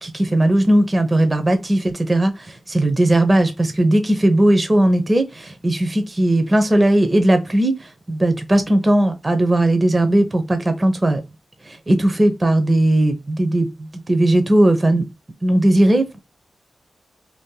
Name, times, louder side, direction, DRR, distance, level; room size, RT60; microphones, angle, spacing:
voice 1, 0.0-11.2 11.6-15.1 15.4-16.2, right 1 dB, 30° right, 0.8 m, -17 dB
2.8 x 2.4 x 3.6 m
cardioid pair, 55°, 0 cm